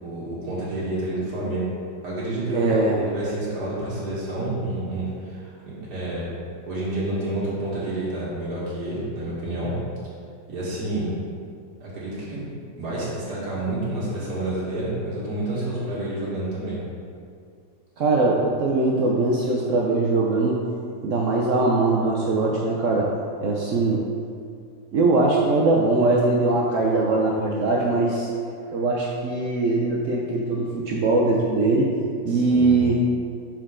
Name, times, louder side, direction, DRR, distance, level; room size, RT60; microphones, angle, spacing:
voice 1, 0.0-1.7 2.0-6.2 6.7-9.7 10.5-11.1 11.8-12.5 12.8-16.8 32.3-32.8, right 1 dB, 55° right, -9 dB, 2.1 m, -29 dB
voice 2, 2.5-3.0 18.0-20.6 21.0-23.1 23.4-24.0 24.9-28.3 28.7-31.9 32.2-33.0, right 3 dB, 75° right, -3 dB, 0.7 m, -21 dB
6.4 x 4.4 x 3.6 m, 2.3 s
omnidirectional pair, 2.0 m